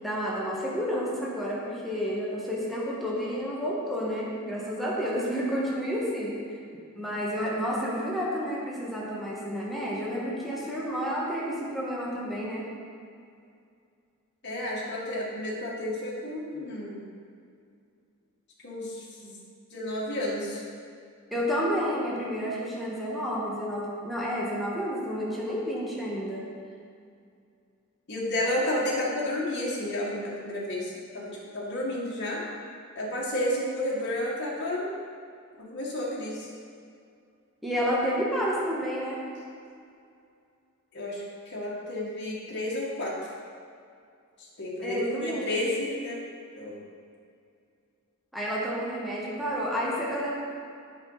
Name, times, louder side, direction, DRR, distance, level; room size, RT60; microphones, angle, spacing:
voice 1, 0.0-6.6 6.9-12.6 21.3-26.4 37.6-39.2 44.8-45.5 48.3-50.4, equal, ahead, -6 dB, 1.3 m, -30 dB
voice 2, 14.4-17.0 18.6-19.4 19.7-20.6 28.1-32.4 32.9-34.9 35.7-36.5 40.9-43.2 44.6-46.2 46.6-46.8, left 1 dB, 55° left, -5 dB, 1.6 m, -31 dB
8.1 x 5.9 x 4.0 m, 2.3 s
head